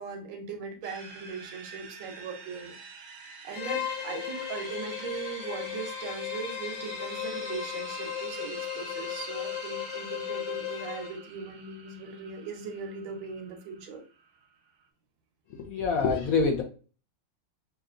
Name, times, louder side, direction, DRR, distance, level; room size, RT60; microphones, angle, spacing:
voice 1, 0.0-2.7 3.4-14.0, right 5 dB, 90° right, 4 dB, 1.6 m, -39 dB
sound 1, 0.8-14.9, right 5 dB, 60° right, 1.1 m, -46 dB
Bowed string instrument, 3.5-11.2, left 11 dB, 85° left, 1.3 m, -36 dB
voice 2, 15.5-16.6, left 4 dB, 70° left, 3 dB, 0.9 m, -26 dB
5.7 x 2.4 x 2.5 m, 0.38 s
omnidirectional pair, 2.0 m